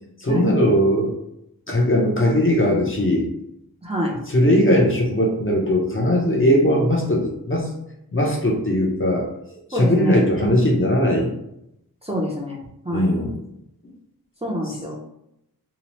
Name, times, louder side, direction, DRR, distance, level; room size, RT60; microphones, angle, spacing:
voice 1, 0.2-1.2 1.7-3.3 4.3-7.7 8.1-11.3 12.9-13.5 14.6-14.7, equal, 35° left, -2 dB, 0.6 m, -19 dB
voice 2, 3.8-4.2 9.7-10.5 12.0-12.6 12.8-13.1 14.4-15.0, equal, 15° right, -3 dB, 0.5 m, -26 dB
2.8 x 2.0 x 3.0 m, 0.81 s
wide cardioid pair, 65°, 37 cm